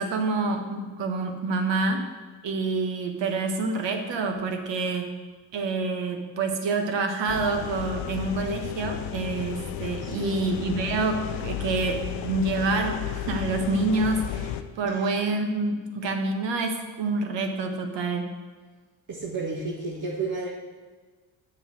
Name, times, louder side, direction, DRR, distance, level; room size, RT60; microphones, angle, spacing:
voice 1, 0.0-2.1 2.4-5.1 5.5-18.3, right 3 dB, 60° right, 5 dB, 1.5 m, -27 dB
sound 1, 7.3-14.6, left 10 dB, 70° left, 0.7 m, -33 dB
voice 2, 10.0-10.5 14.8-15.2 19.1-20.5, right 3 dB, 40° right, -2 dB, 1.6 m, -32 dB
7.7 x 5.9 x 6.3 m, 1.4 s
hypercardioid pair, 60°, 48 cm